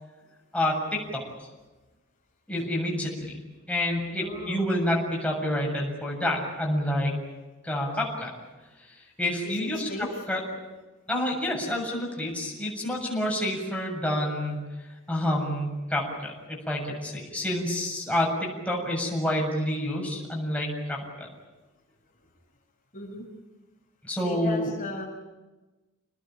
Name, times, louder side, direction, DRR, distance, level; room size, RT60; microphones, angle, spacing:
voice 1, 0.5-1.2 2.5-3.3 3.7-7.2 7.6-8.3 9.2-9.9 10.3-10.4 11.1-14.6 15.1-21.3 24.0-24.7, left 1 dB, 5° left, -2 dB, 7.4 m, -28 dB
voice 2, 4.2-4.7 9.4-10.2 22.9-23.3 24.2-25.1, left 1 dB, 40° left, -1 dB, 5.8 m, -37 dB
28.0 x 20.0 x 9.0 m, 1.2 s
head